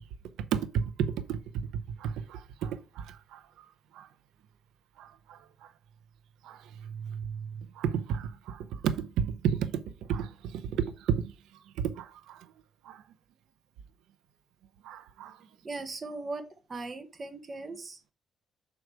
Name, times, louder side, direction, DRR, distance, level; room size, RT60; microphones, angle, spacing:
voice 1, 0.5-1.7 2.0-3.4 3.9-4.1 5.0-5.4 6.4-6.6 6.9-7.4 7.8-9.8 10.1-11.3 11.8-12.4 12.8-13.0 14.8-15.4, right 8 dB, 90° right, 0.7 m, -32 dB
voice 2, 15.6-16.4 16.7-18.1, right 3 dB, 35° right, 1.6 m, -38 dB
6.3 x 4.7 x 4.8 m
cardioid pair, 90°, 0 cm